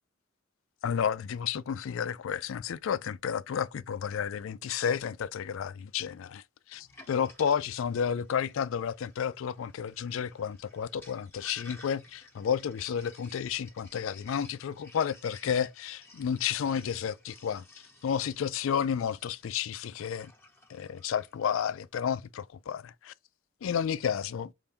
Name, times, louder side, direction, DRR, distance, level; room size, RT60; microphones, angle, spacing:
voice 1, 0.8-6.4 6.7-17.6 18.0-20.3 20.7-23.1 23.6-24.5, left 7 dB, 70° left, 0.4 m, -31 dB
Sink (filling or washing), 6.7-21.8, left 2 dB, 10° left, 0.9 m, -56 dB
5.6 x 2.6 x 3.4 m
head